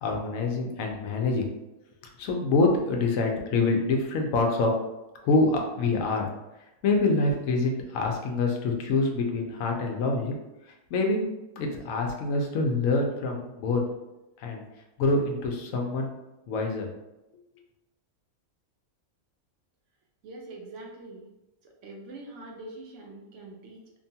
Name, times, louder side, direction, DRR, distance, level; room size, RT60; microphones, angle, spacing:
voice 1, 0.0-1.4 2.0-4.7 5.2-6.3 6.8-10.4 10.9-11.2 11.6-13.8 14.4-14.6 15.0-16.1 16.5-16.9, left 3 dB, 70° left, 1 dB, 0.9 m, -26 dB
voice 2, 20.2-21.3 21.6-24.0, right 2 dB, 65° right, 0 dB, 0.9 m, -44 dB
2.9 x 2.2 x 2.7 m, 0.96 s
omnidirectional pair, 1.5 m